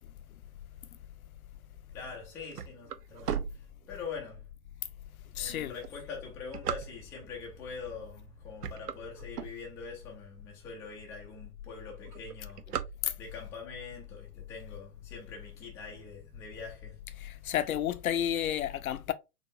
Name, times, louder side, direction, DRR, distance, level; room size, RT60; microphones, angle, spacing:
voice 1, 1.9-4.5 5.4-12.7 13.2-17.0 17.4-17.6, left 5 dB, 5° left, 0.4 m, -44 dB
sound 1, 2.2-4.3 4.9-5.0 5.7-7.4 8.0-8.2 8.5-10.1 10.6-10.7 10.9-11.0 11.3-11.6 11.9-13.5, right 9 dB, 80° right, 0.6 m, -37 dB
voice 2, 5.3-5.7 13.0-13.1 17.2-19.1, left 10 dB, 65° left, 0.6 m, -31 dB
4.1 x 3.2 x 2.6 m
figure-of-eight pair, 105°, 46 cm